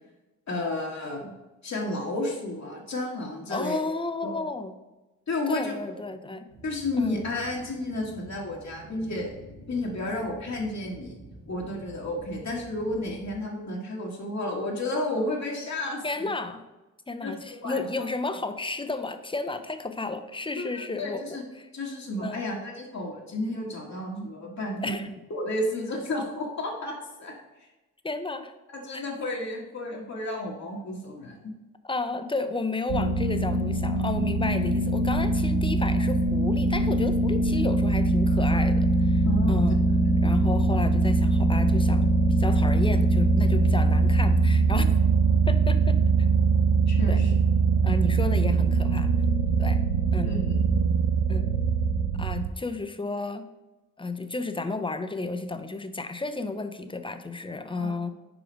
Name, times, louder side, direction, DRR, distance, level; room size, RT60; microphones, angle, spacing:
voice 1, 0.5-1.3 1.6-3.8 4.2-4.5 5.3-5.7 6.6-9.3 9.7-11.1 11.5-16.3 17.2-17.8 20.6-21.4 21.7-25.0 25.3-27.3 27.6-27.7 28.7-31.5 39.2-39.6 40.2-40.4 46.9-47.3 50.2-50.8 57.8-58.1, left 1 dB, 55° left, -2 dB, 1.4 m, -32 dB
voice 2, 3.5-4.7 5.5-6.4 7.0-7.3 16.0-16.6 17.1-21.7 22.2-22.4 24.8-25.1 28.0-28.5 28.9-29.0 31.8-39.8 40.2-42.1 42.4-44.9 45.5-46.0 47.1-47.2 47.8-49.1 49.6-49.8 50.1-50.3 51.3-51.6 52.2-53.4 54.0-58.1, left 3 dB, 15° left, 9 dB, 0.6 m, -32 dB
sound 1, 6.5-13.3, right 1 dB, 85° right, 1.9 m, -48 dB
sound 2, 32.9-52.5, right 3 dB, 65° right, 0.7 m, -22 dB
5.0 x 4.9 x 5.1 m, 1.1 s
cardioid pair, 75°, 32 cm